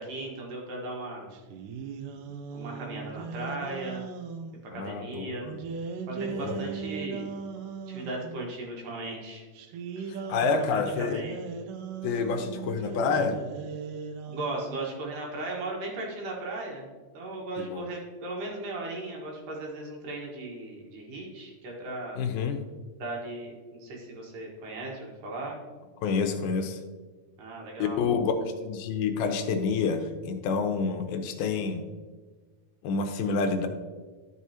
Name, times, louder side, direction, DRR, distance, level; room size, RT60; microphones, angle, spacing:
voice 1, 0.0-1.3 2.5-4.1 4.7-5.5 6.1-7.3 7.9-9.5 10.5-11.4 14.3-22.2 23.0-25.6 27.4-28.0, right 2 dB, 65° right, -1 dB, 2.8 m, -37 dB
sound 1, 1.3-4.6 5.5-8.4 9.6-14.8, right 5 dB, 80° right, 1.9 m, -38 dB
voice 2, 4.7-5.6 6.2-6.6 10.1-11.2 12.0-13.4 17.6-17.8 22.2-22.6 26.0-26.8 27.8-28.3 28.6-31.9 32.8-33.7, left 5 dB, 80° left, 6 dB, 2.4 m, -28 dB
11.5 x 6.1 x 2.8 m, 1.4 s
omnidirectional pair, 4.4 m